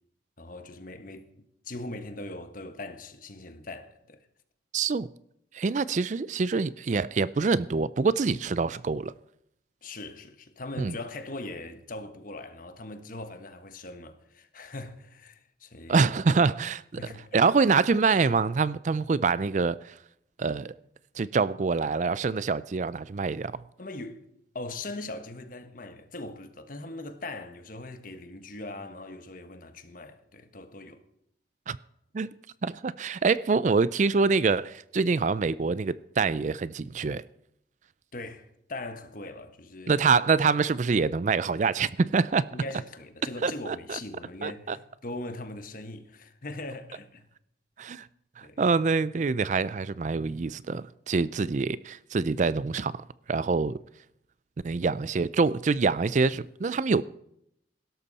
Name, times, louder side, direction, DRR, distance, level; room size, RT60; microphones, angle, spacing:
voice 1, 0.4-4.3 9.8-16.1 17.0-17.4 23.8-24.2 24.5-31.0 38.1-40.1 42.5-47.3 48.4-48.6, left 2 dB, 50° left, 1.4 m, -40 dB
voice 2, 4.7-5.1 5.5-9.1 10.8-10.9 15.9-16.8 17.3-19.9 20.4-20.7 21.2-23.6 31.7-31.8 32.1-32.3 32.6-37.2 39.9-42.4 43.4-44.0 44.4-44.8 47.8-48.1 48.4-52.9 53.3-53.8 54.6-57.0, right 4 dB, 40° right, 0.4 m, -25 dB
17.0 x 12.5 x 4.2 m
head